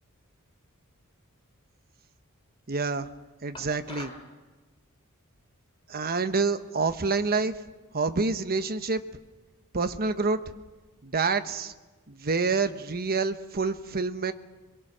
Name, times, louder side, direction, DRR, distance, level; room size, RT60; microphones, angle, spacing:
voice 1, 2.7-3.1 3.4-4.1 5.9-7.6 7.9-9.0 9.7-10.4 11.0-11.7 12.1-14.3, right 4 dB, 45° right, 9 dB, 1.1 m, -27 dB
sound 1, 3.5-4.3, left 2 dB, 25° left, 2.9 m, -43 dB
23.5 x 22.5 x 6.2 m, 1.2 s
head